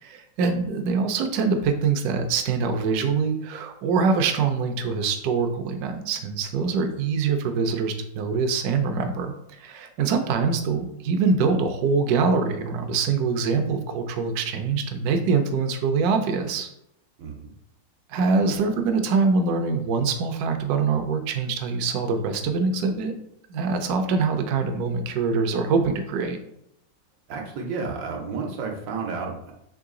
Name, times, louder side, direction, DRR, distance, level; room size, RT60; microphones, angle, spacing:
voice 1, 0.0-16.7 18.1-23.1 23.5-26.4, right 4 dB, 70° right, 6 dB, 1.0 m, -24 dB
voice 2, 17.2-17.5 27.3-29.5, right 4 dB, 90° right, 1 dB, 1.5 m, -31 dB
3.8 x 3.1 x 3.6 m, 0.76 s
omnidirectional pair, 1.9 m